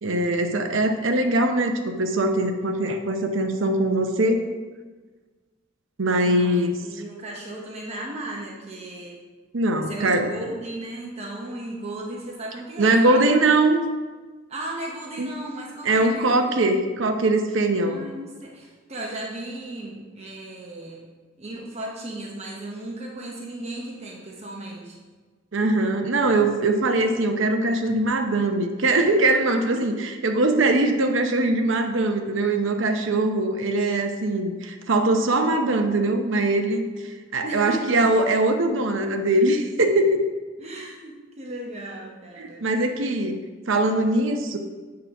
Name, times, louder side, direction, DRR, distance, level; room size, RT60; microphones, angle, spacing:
voice 1, 0.0-4.5 6.0-6.8 9.5-10.3 12.8-13.8 15.2-15.3 15.8-18.0 25.5-29.9 30.2-36.9 37.3-40.2 42.4-43.3 43.7-44.6, right 2 dB, 70° right, 5 dB, 0.8 m, -21 dB
voice 2, 6.8-9.2 9.9-13.2 14.5-16.5 17.8-21.1 21.4-25.0 37.4-38.1 40.6-42.7, right 1 dB, 35° right, -2 dB, 0.9 m, -35 dB
8.3 x 3.8 x 5.8 m, 1.4 s
head